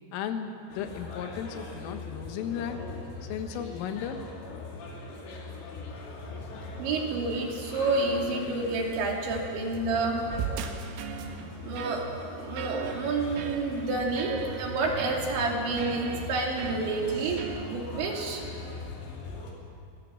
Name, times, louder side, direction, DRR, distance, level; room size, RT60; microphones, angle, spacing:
voice 1, 0.1-2.8 3.3-4.2, left 8 dB, 85° left, 6 dB, 3.9 m, -35 dB
sound 1, 0.7-19.5, left 3 dB, 65° left, 4.8 m, -41 dB
voice 2, 6.8-10.3 11.6-18.4, right 3 dB, 65° right, -1 dB, 5.0 m, -29 dB
sound 2, 10.3-17.7, right 7 dB, 85° right, 4.0 m, -39 dB
24.5 x 18.0 x 7.8 m, 2.4 s
omnidirectional pair, 5.7 m